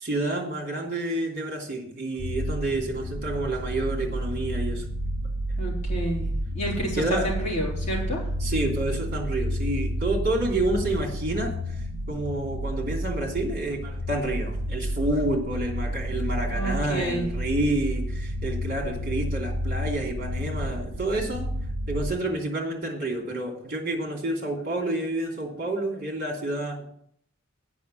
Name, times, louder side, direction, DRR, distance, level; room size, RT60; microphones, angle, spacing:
voice 1, 0.0-4.8 7.0-7.3 8.4-11.5 12.1-21.5 21.9-26.8, right 2 dB, 45° right, 0 dB, 2.9 m, -29 dB
sound 1, 2.2-22.1, equal, 60° left, 4.0 m, -30 dB
voice 2, 5.6-8.2 16.5-17.3, right 1 dB, 35° left, -5 dB, 3.9 m, -30 dB
8.5 x 6.1 x 7.6 m, 0.66 s
head